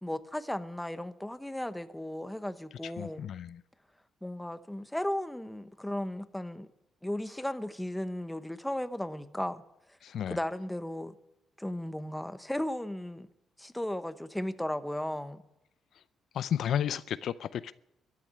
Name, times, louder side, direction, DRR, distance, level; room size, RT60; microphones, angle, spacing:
voice 1, 0.0-3.3 4.2-6.7 7.0-9.6 10.3-11.1 11.6-13.3 13.6-15.4, left 1 dB, 5° left, 1.0 m, -35 dB
voice 2, 2.8-3.6 10.0-10.4 16.3-17.7, left 9 dB, 70° left, 0.5 m, -33 dB
13.5 x 10.5 x 9.8 m
cardioid pair, 90°, 0 cm